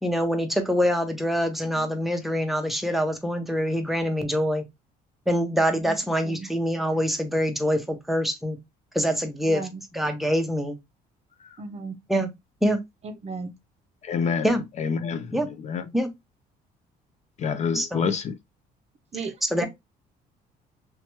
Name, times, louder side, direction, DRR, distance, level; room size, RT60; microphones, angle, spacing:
voice 1, 0.0-4.6 5.3-8.6 8.9-9.7 9.9-10.8 12.1-12.3 12.6-12.8 14.4-14.6 15.3-15.5 15.9-16.1 17.7-18.1 19.5-19.7, equal, ahead, 0.7 m, -25 dB
voice 2, 9.5-9.8 11.6-12.0 13.2-13.5 19.1-19.7, right 4 dB, 40° right, 0.6 m, -35 dB
voice 3, 14.0-14.5 14.8-15.9 17.4-18.4, left 6 dB, 45° left, 0.4 m, -28 dB
2.9 x 2.2 x 2.9 m
cardioid pair, 110°, 17 cm